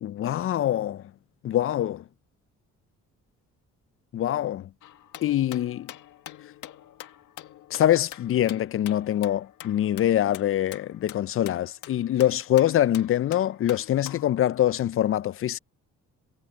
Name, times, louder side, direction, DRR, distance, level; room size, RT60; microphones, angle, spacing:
voice 1, 0.0-1.0 1.4-2.0 4.1-4.7 5.2-5.9 7.7-15.6, left 12 dB, 45° left, 0.4 m, -24 dB
sound 1, 4.8-14.4, left 12 dB, 85° left, 1.8 m, -46 dB
cardioid pair, 90°, 30 cm